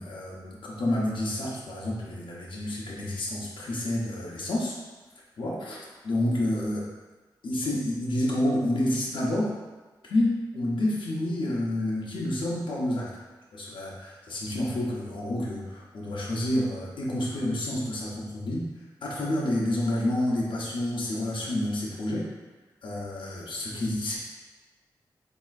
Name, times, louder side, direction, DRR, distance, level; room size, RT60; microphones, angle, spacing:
voice 1, 0.0-4.8 5.4-5.8 6.0-6.9 7.4-9.5 10.0-13.1 13.5-18.7 19.0-22.3 22.8-24.2, left 1 dB, 80° left, -4 dB, 0.8 m, -29 dB
4.2 x 2.8 x 2.4 m, 1.2 s
wide cardioid pair, 85°, 8 cm